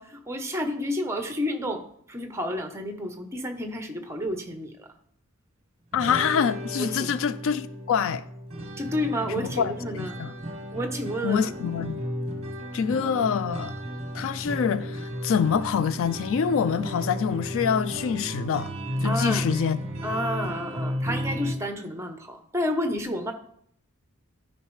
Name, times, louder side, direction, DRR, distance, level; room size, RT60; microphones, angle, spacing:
voice 1, 0.0-4.9 6.8-7.1 8.8-10.2 10.7-11.5 19.0-19.5 20.0-23.3, left 1 dB, 10° right, 0.8 m, -30 dB
voice 2, 5.9-8.2 9.4-10.3 11.2-12.0 12.7-13.7 14.1-18.7 19.0-19.8, left 7 dB, 60° left, 0.3 m, -26 dB
sound 1, 5.9-21.5, equal, 30° right, 1.1 m, -33 dB
12.0 x 5.1 x 3.2 m
head